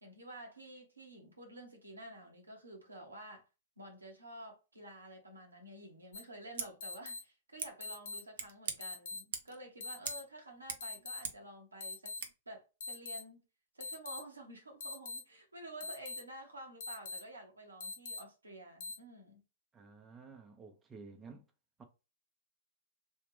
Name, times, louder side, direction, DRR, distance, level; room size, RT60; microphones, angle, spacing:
voice 1, 0.0-3.4 3.8-12.1 12.5-13.4 13.7-19.4, right 1 dB, 85° right, 1.2 m, -51 dB
sound 1, 6.1-6.2 6.8-7.2 7.8-8.2 8.8-9.2 9.8-10.2 10.8-11.2 11.8-12.2 12.8-13.2 13.8-14.2 14.8-15.2 15.8-16.2 16.8-17.2 17.8-18.2 18.8-18.9, left 4 dB, 60° left, 0.8 m, -42 dB
Scissors, 6.5-6.7 7.6-7.7 8.3-8.8 9.3-9.6 10.0-10.3 10.5-11.5 12.2-12.3, right 6 dB, 65° right, 0.7 m, -42 dB
voice 2, 19.7-21.5 21.8-21.9, right 4 dB, 20° right, 0.7 m, -52 dB
3.3 x 2.4 x 3.4 m
figure-of-eight pair, 105°, 0 cm